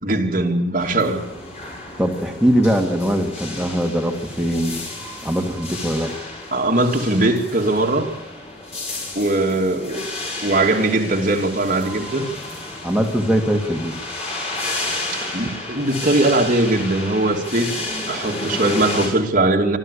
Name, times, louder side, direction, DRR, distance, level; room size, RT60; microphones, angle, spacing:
voice 1, 0.0-1.2 6.5-8.1 9.1-10.1 10.4-12.3 15.3-17.7 18.1-19.8, right 2 dB, 50° right, 1 dB, 2.8 m, -20 dB
sound 1, 0.8-19.1, left 2 dB, 40° left, 6.8 m, -32 dB
voice 2, 2.0-4.8 5.2-6.1 12.8-14.0, equal, 5° right, 1 dB, 2.1 m, -21 dB
25.5 x 14.0 x 8.5 m, 0.93 s
head